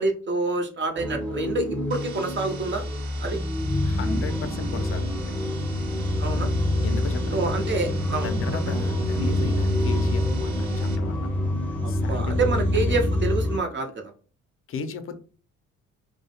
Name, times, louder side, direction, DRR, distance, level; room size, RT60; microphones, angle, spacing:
voice 1, 0.0-2.8 3.2-3.4 6.2-6.5 7.3-8.3 11.8-14.0, right 3 dB, 40° right, 4 dB, 0.6 m, -27 dB
sound 1, 1.0-13.6, left 1 dB, 5° left, 0.7 m, -26 dB
sound 2, 1.9-11.0, right 6 dB, 90° right, 0.6 m, -44 dB
sound 3, 3.2-13.3, right 1 dB, 65° right, 0.9 m, -37 dB
voice 2, 3.8-5.3 6.8-7.4 8.2-11.3 11.9-13.0 14.7-15.1, left 5 dB, 45° left, 8 dB, 0.5 m, -35 dB
2.3 x 2.0 x 2.8 m, 0.38 s
cardioid pair, 90°, 30 cm